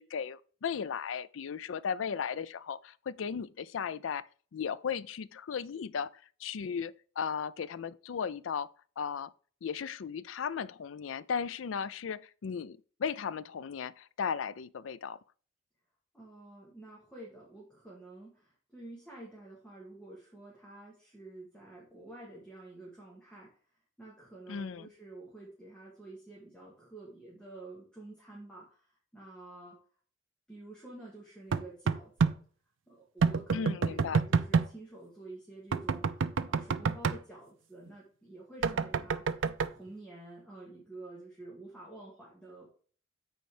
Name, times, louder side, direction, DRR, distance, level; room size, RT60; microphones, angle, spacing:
voice 1, 0.0-4.2 4.5-6.1 6.4-8.7 9.0-9.3 9.6-15.2 24.5-24.9 33.5-34.2, left 6 dB, 85° left, 0.4 m, -36 dB
voice 2, 16.1-23.6 24.0-29.8 30.5-32.4 32.9-42.7, right 2 dB, 5° left, 2.1 m, -49 dB
sound 1, 31.5-32.4 33.2-34.7 35.7-37.2 38.6-39.7, right 5 dB, 80° right, 0.5 m, -27 dB
7.9 x 4.5 x 4.9 m
head